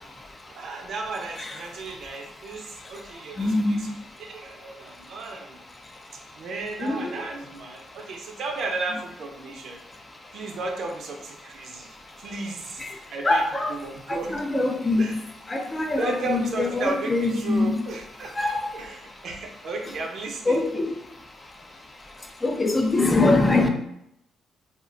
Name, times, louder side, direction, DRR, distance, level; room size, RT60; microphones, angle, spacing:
voice 1, 0.5-3.9 4.3-5.6 6.3-9.8 10.3-11.9 12.2-12.8 13.1-13.4 13.7-14.4 15.0-15.2 15.8-18.3 18.7-20.6, right 3 dB, 65° right, 0.5 m, -34 dB
voice 2, 3.4-3.8 6.8-7.0 12.8-12.9 13.2-13.7 14.1-15.1 15.5-17.7 18.4-18.6 20.5-21.0 22.4-23.7, left 2 dB, 20° left, 0.4 m, -23 dB
2.4 x 2.2 x 3.7 m
cardioid pair, 95°, 0 cm